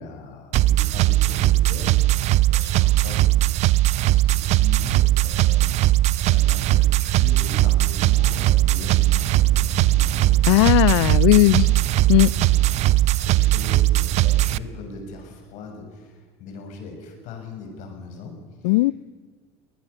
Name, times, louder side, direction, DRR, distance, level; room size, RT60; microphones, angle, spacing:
voice 1, 0.0-2.0 2.5-3.3 3.7-3.8 4.0-9.7 12.1-18.8, left 4 dB, 60° left, 3 dB, 6.9 m, -39 dB
sound 1, 0.5-14.6, right 16 dB, 50° right, 0.7 m, -19 dB
Squeak, 7.4-13.7 14.5-14.6, left 5 dB, 20° left, 1.1 m, -41 dB
voice 2, 10.4-11.7 12.1-12.3 18.6-18.9, left 21 dB, 80° left, 24 dB, 0.5 m, -17 dB
22.5 x 19.0 x 7.1 m, 1.5 s
supercardioid pair, 100°, 14 cm